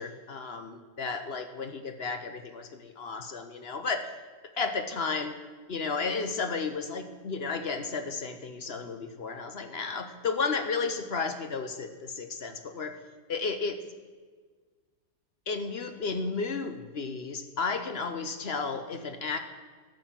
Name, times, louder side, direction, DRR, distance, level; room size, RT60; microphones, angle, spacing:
voice 1, 0.0-4.1 4.6-5.3 5.7-13.0 13.3-13.8 15.5-19.4, left 4 dB, 45° left, 8 dB, 0.9 m, -33 dB
12.5 x 7.7 x 7.3 m, 1.5 s
omnidirectional pair, 1.8 m